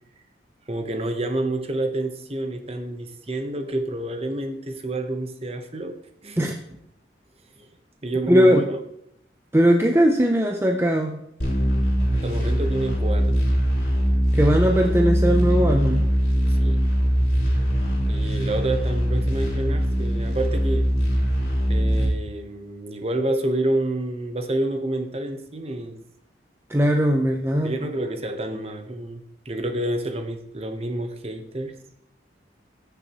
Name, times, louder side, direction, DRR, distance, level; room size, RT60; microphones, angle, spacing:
voice 1, 0.7-6.0 6.2-6.5 7.6-7.7 8.0-8.8 12.1-13.5 16.5-16.9 18.1-20.9 21.7-26.0 27.6-31.7, right 1 dB, 35° right, 6 dB, 1.0 m, -28 dB
voice 2, 8.3-8.7 9.5-11.2 14.3-16.1 26.7-27.7, equal, 15° right, 3 dB, 0.6 m, -19 dB
sound 1, 11.4-22.1, equal, 60° left, 3.6 m, -22 dB
16.0 x 6.8 x 3.0 m, 0.77 s
head